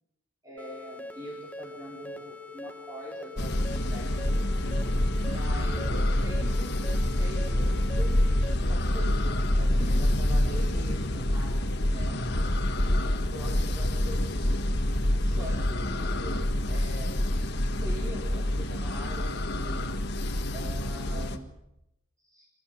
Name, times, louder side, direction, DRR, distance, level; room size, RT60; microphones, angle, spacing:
voice 1, 0.4-4.5 5.3-8.2 8.6-9.3 9.6-12.5 13.2-14.6 15.2-17.2 17.8-19.9 20.5-21.5 22.2-22.5, equal, 15° right, -4 dB, 4.7 m, -43 dB
sound 1, 0.6-8.5, left 2 dB, 5° left, 1.3 m, -43 dB
sound 2, 3.4-21.4, left 1 dB, 50° left, 1.7 m, -27 dB
26.5 x 14.0 x 9.0 m, 0.85 s
head